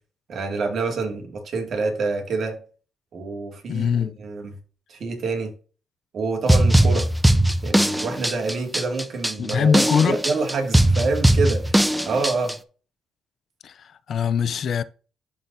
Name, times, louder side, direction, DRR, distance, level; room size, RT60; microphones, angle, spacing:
voice 1, 0.3-2.6 3.1-4.5 4.9-5.5 6.1-7.1 7.6-11.8 12.0-12.6, right 3 dB, 55° right, 2.3 m, -27 dB
voice 2, 3.7-4.2 9.4-10.2 13.6-14.8, left 7 dB, 60° left, 0.5 m, -22 dB
sound 1, 6.5-12.5, right 1 dB, 5° right, 0.5 m, -19 dB
11.0 x 4.0 x 2.7 m
cardioid pair, 90°, 0 cm